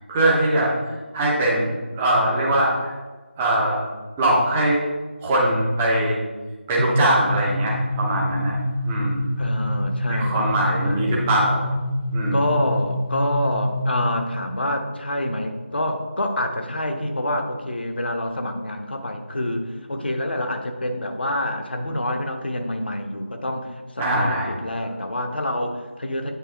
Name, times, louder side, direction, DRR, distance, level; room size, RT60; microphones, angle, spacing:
voice 1, 0.1-0.7 1.1-2.9 3.4-3.8 4.2-4.8 5.2-6.2 6.7-8.6 8.8-9.3 10.1-11.6 12.1-12.5 24.0-24.5, right 1 dB, 5° right, -4 dB, 0.5 m, -21 dB
sound 1, 6.8-14.3, equal, 60° right, 1.2 m, -26 dB
voice 2, 9.4-10.5 10.8-11.3 12.3-23.7 23.9-26.3, left 1 dB, 55° left, 5 dB, 0.9 m, -27 dB
8.4 x 4.1 x 3.8 m, 1.3 s
figure-of-eight pair, 170°, 7 cm